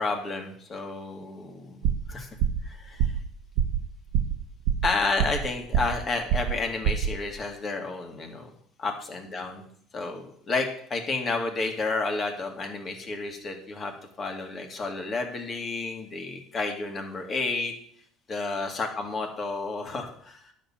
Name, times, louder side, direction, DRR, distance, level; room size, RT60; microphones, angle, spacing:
voice 1, 0.0-1.8 2.1-2.3 2.6-3.1 4.8-8.5 8.8-9.6 9.9-17.7 18.3-20.4, left 3 dB, 30° left, 4 dB, 2.3 m, -31 dB
sound 1, 1.8-2.1 2.4-2.7 3.0-3.3 3.6-3.8 4.1-4.4 4.7-5.5 5.7-6.0 6.3-6.6 6.8-7.1, right 9 dB, 85° right, 1.1 m, -25 dB
10.5 x 6.7 x 7.5 m, 0.64 s
cardioid pair, 125°, 0 cm